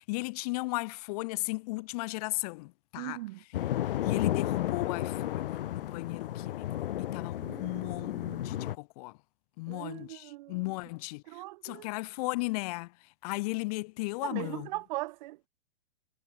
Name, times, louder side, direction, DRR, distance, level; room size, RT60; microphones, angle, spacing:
voice 1, 0.0-3.2 4.0-9.2 9.6-11.2 11.6-12.9 13.2-14.7, left 24 dB, 40° left, 1.0 m, -36 dB
voice 2, 3.0-3.4 7.4-8.7 9.7-10.7 11.3-11.9 14.2-15.5, right 20 dB, 50° right, 3.2 m, -40 dB
sound 1, 3.5-8.8, left 13 dB, 65° left, 2.4 m, -33 dB
hypercardioid pair, 140°, 30 cm